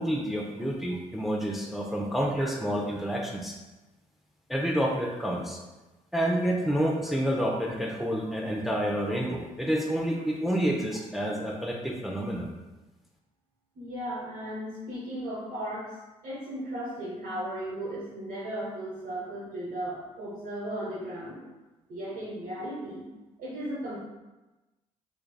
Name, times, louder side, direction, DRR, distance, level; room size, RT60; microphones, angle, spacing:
voice 1, 0.0-3.5 4.5-5.6 6.1-12.5, equal, ahead, -1 dB, 0.6 m, -29 dB
voice 2, 13.7-21.4 21.9-23.0 23.4-24.0, right 1 dB, 65° right, -7 dB, 1.2 m, -36 dB
3.5 x 3.3 x 2.2 m, 1.1 s
hypercardioid pair, 45°, 17 cm